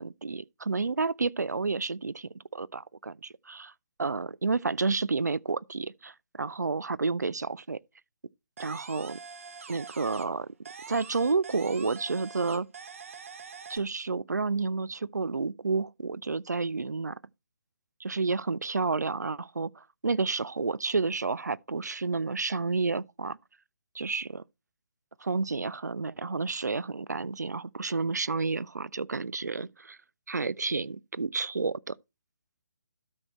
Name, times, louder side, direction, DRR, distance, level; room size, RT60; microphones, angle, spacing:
voice 1, 0.0-3.7 4.0-7.8 8.6-9.2 9.7-10.5 10.9-12.7 13.7-17.2 18.0-23.4 23.9-24.4 25.2-30.0 30.3-32.0, right 4 dB, 75° right, 0.4 m, -30 dB
sound 1, 8.6-10.4 10.6-13.8, right 5 dB, 50° right, 1.3 m, -45 dB
12.5 x 6.3 x 3.0 m
figure-of-eight pair, 140°, 9 cm